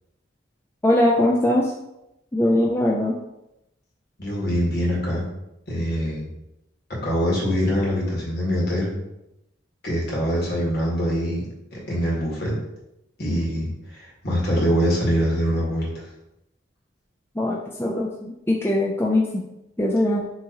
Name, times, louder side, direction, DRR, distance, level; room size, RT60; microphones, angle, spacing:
voice 1, 0.8-1.7 2.3-3.2 17.4-19.4 19.8-20.3, left 1 dB, 10° left, -3 dB, 0.4 m, -21 dB
voice 2, 4.2-5.2 5.7-6.3 6.9-8.9 9.8-11.4 11.7-12.5 13.2-16.0, equal, 55° left, -5 dB, 1.7 m, -24 dB
6.2 x 2.9 x 2.9 m, 0.86 s
head